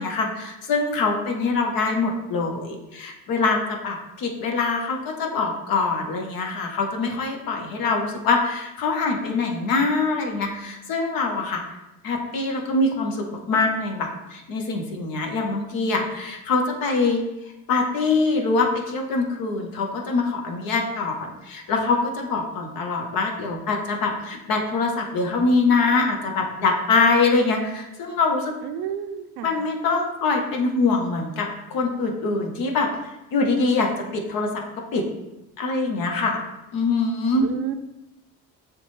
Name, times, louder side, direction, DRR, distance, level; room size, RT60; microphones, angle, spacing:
voice 1, 0.0-11.6 12.0-17.2 17.7-28.5 29.4-32.9 33.3-34.5 34.9-35.0 35.6-36.4 36.7-37.5, left 3 dB, 65° left, 2 dB, 1.0 m, -24 dB
voice 2, 28.6-29.5 37.4-37.7, right 9 dB, 75° right, 8 dB, 0.5 m, -30 dB
6.9 x 2.3 x 3.1 m, 0.95 s
supercardioid pair, 65°, 38 cm